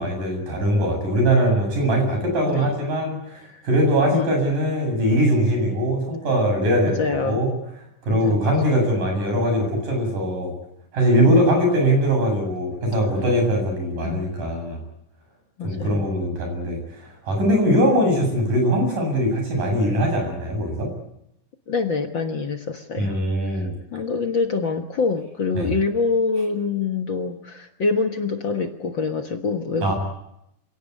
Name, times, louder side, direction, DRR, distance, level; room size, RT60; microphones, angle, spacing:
voice 1, 0.0-7.5 8.0-10.5 10.9-14.8 15.6-20.9 23.0-23.7 25.6-25.7 29.8-29.9, equal, 90° right, 3 dB, 9.4 m, -21 dB
voice 2, 6.8-7.4 8.1-8.4 11.3-11.6 14.0-14.3 15.6-16.1 21.7-29.9, left 4 dB, 50° left, 6 dB, 1.7 m, -26 dB
27.0 x 17.5 x 9.7 m, 0.81 s
omnidirectional pair, 3.7 m